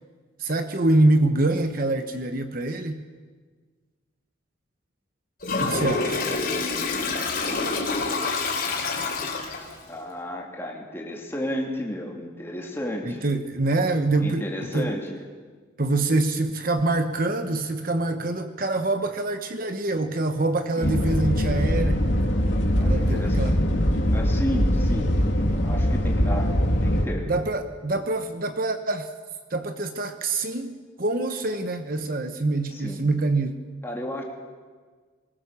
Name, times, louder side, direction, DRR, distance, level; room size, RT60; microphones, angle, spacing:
voice 1, 0.4-3.0 5.6-6.3 13.0-14.5 14.7-14.9 15.8-22.0 22.8-23.6 27.3-29.1 29.5-33.6, right 2 dB, 45° right, 8 dB, 1.0 m, -25 dB
Toilet flush, 5.4-9.8, left 3 dB, 45° left, 3.8 m, -27 dB
voice 2, 6.3-7.4 9.9-13.2 14.2-15.2 20.8-20.9 22.8-23.5 24.1-25.1 25.6-27.3 32.7-33.0 33.8-34.2, equal, 10° left, 0 dB, 2.8 m, -33 dB
sound 1, 20.8-27.1, equal, 65° left, 2.6 m, -22 dB
22.5 x 20.0 x 7.1 m, 1.5 s
head